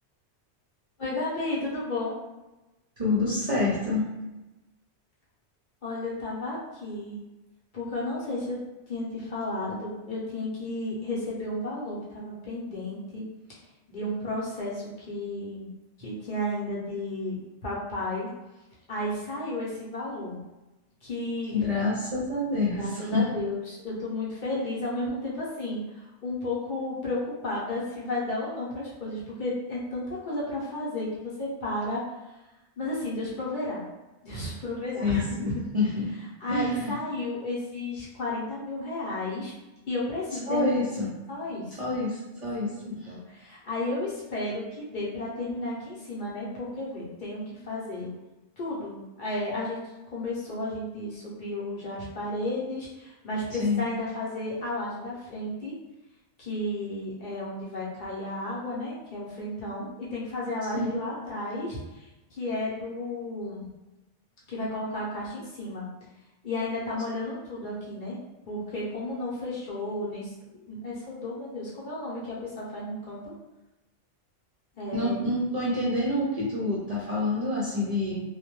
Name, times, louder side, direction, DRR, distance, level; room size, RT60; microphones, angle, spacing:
voice 1, 1.0-2.2 5.8-7.2 7.7-8.6 8.9-13.6 13.9-15.7 16.0-18.3 18.9-20.4 21.0-21.7 22.7-32.0 32.8-33.8 34.2-35.9 36.4-39.5 39.9-40.8 41.3-41.9 42.6-48.1 48.6-49.8 50.1-55.7 56.4-63.7 64.5-65.9 66.4-68.2 68.4-70.3 70.6-73.3 74.8-75.3, left 2 dB, 50° left, -7 dB, 0.8 m, -33 dB
voice 2, 3.0-4.0 21.5-23.3 35.0-36.1 36.5-36.9 40.5-41.1 41.8-43.1 53.6-53.8 60.7-60.9 74.9-78.2, left 2 dB, 50° right, -7 dB, 0.5 m, -27 dB
2.1 x 2.1 x 2.9 m, 1.0 s
omnidirectional pair, 1.2 m